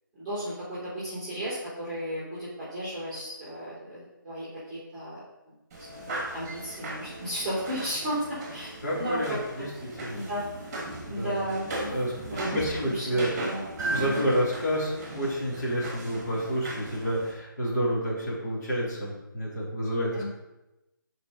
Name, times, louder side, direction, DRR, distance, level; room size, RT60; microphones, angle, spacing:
voice 1, 0.1-5.2 5.9-9.7 10.1-10.4 11.1-13.6 14.0-14.3 20.1-20.3, equal, 5° left, -13 dB, 3.0 m, -35 dB
sound 1, 5.7-17.3, right 1 dB, 20° right, 2.2 m, -37 dB
voice 2, 8.8-9.7 10.0-10.2 11.1-11.4 11.8-13.3 13.9-20.2, equal, 50° left, -7 dB, 3.1 m, -29 dB
8.7 x 5.1 x 5.4 m, 0.97 s
figure-of-eight pair, 165°, 11 cm